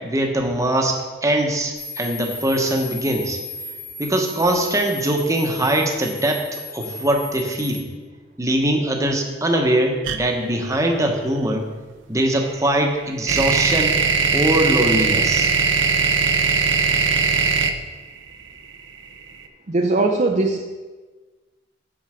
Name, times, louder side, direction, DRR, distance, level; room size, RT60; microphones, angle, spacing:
voice 1, 0.0-3.4 4.0-7.8 8.4-11.7 12.1-13.9 14.3-15.5, right 1 dB, 15° right, 2 dB, 1.0 m, -22 dB
sound 1, 1.8-7.8, left 2 dB, 50° left, 3.3 m, -35 dB
sound 2, 10.0-10.2 12.3-19.3, right 5 dB, 80° right, 0.6 m, -19 dB
voice 2, 19.7-20.6, right 2 dB, 40° right, 2 dB, 0.5 m, -19 dB
7.5 x 7.1 x 5.0 m, 1.3 s
head